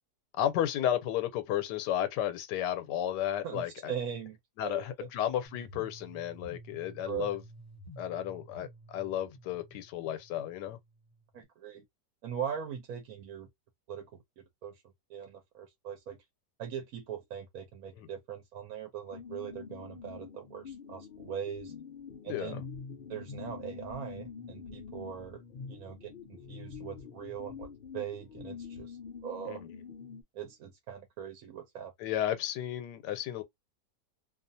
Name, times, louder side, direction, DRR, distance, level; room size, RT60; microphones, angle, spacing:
voice 1, 0.4-3.9 4.6-7.4 8.0-10.8 18.0-18.1 22.3-22.6 29.5-29.8 32.0-33.4, left 11 dB, 90° left, 1.2 m, -33 dB
voice 2, 3.4-5.1 7.0-7.4 11.3-11.8 12.2-13.5 13.9-14.7 15.1-16.2 16.6-21.7 22.2-22.6 23.1-25.4 25.7-26.1 26.5-27.7 27.9-29.6 30.3-31.9, right 8 dB, 65° right, 1.0 m, -41 dB
sound 1, 5.5-11.4, right 1 dB, 30° left, 0.8 m, -51 dB
sound 2, 19.1-30.2, left 6 dB, 65° left, 0.5 m, -46 dB
2.6 x 2.4 x 2.6 m
omnidirectional pair, 1.8 m